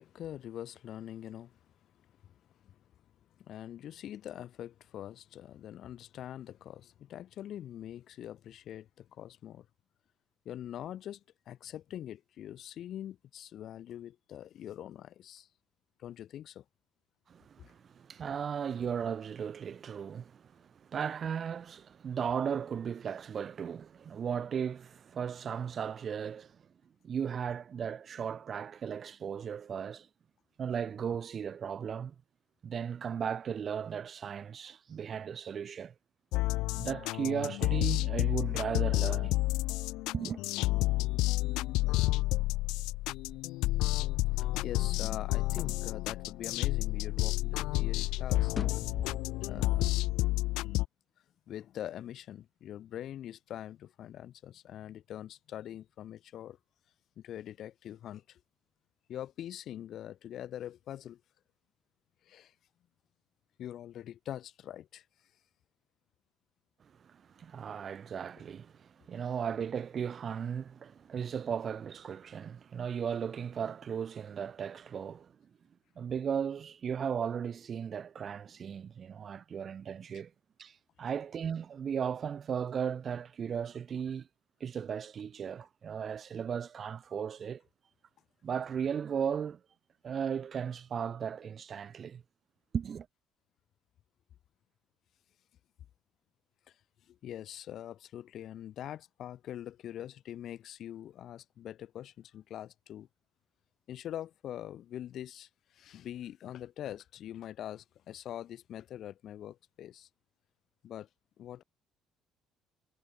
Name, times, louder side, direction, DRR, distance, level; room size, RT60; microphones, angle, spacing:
voice 1, 0.0-1.6 2.2-2.8 3.4-9.7 10.4-15.5 16.0-16.6 44.4-48.5 49.4-49.9 51.5-56.6 57.2-58.4 59.1-61.2 62.2-62.5 63.6-65.0 68.4-68.5 81.0-81.1 96.7-96.8 97.1-103.1 103.9-110.1 110.8-111.1 111.4-111.6, left 11 dB, 60° left, 1.4 m, -44 dB
voice 2, 17.3-26.6 27.0-30.1 30.6-32.1 32.6-35.9 36.8-39.4 40.1-40.4 67.0-75.3 76.0-80.3 80.6-84.3 84.6-87.6 88.4-89.6 90.0-92.2 92.7-93.1, right 7 dB, 45° right, 0.8 m, -36 dB
sound 1, 36.3-50.9, left 19 dB, 85° left, 1.1 m, -30 dB
sound 2, 42.9-47.3 47.6-50.1, left 6 dB, 40° left, 4.4 m, -43 dB
cardioid pair, 95°, 0 cm